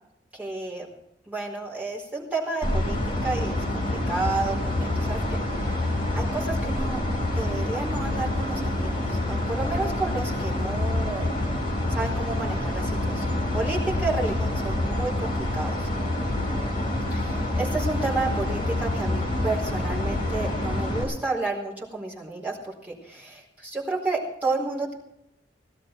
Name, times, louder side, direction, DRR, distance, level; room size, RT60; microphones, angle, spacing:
voice 1, 0.3-0.9 1.3-5.2 5.6-7.0 7.3-11.3 11.9-15.9 17.1-24.9, right 3 dB, 10° right, -3 dB, 4.3 m, -31 dB
sound 1, 2.6-21.0, left 1 dB, 30° left, 4.7 m, -27 dB
18.0 x 12.5 x 4.6 m, 0.80 s
head